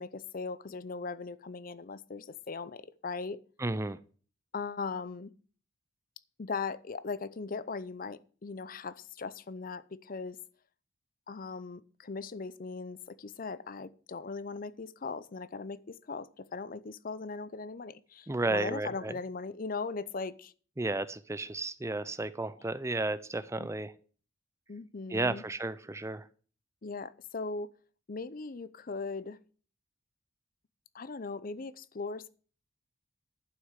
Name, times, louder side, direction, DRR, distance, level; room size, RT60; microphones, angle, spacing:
voice 1, 0.0-3.4 4.5-5.3 6.4-10.4 11.3-20.5 23.6-23.7 24.7-25.4 26.8-27.7 28.1-29.4 30.9-32.3, left 4 dB, 45° left, 0.6 m, -39 dB
voice 2, 3.6-4.0 18.3-19.2 20.8-23.9 25.1-26.3, right 2 dB, 15° right, 0.5 m, -33 dB
11.0 x 6.2 x 8.2 m
head